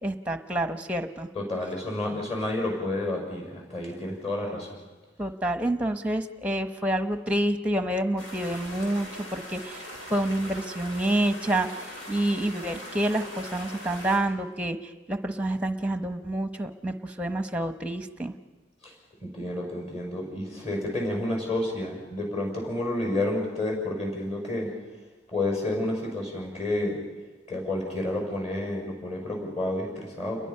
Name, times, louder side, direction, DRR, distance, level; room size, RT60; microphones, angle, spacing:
voice 1, 0.0-1.3 5.2-9.8 10.1-14.8 15.1-18.3, right 1 dB, 5° right, 8 dB, 1.0 m, -28 dB
voice 2, 1.3-4.8 18.8-18.9 19.2-24.7 25.3-27.0 27.5-30.5, left 1 dB, 30° left, 0 dB, 6.1 m, -30 dB
sound 1, 8.2-14.2, left 1 dB, 80° left, 7.1 m, -41 dB
30.0 x 22.0 x 5.7 m, 1.3 s
head